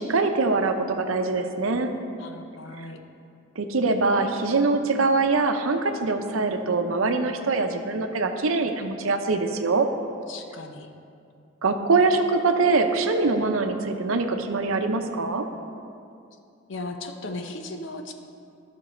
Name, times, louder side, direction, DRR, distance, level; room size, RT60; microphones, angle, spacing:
voice 1, 0.0-1.9 3.6-9.9 11.6-15.4, right 3 dB, 80° right, 6 dB, 0.7 m, -23 dB
voice 2, 2.2-3.0 10.3-10.9 16.7-18.1, left 2 dB, 60° left, 5 dB, 0.7 m, -36 dB
11.5 x 6.1 x 4.3 m, 2.5 s
head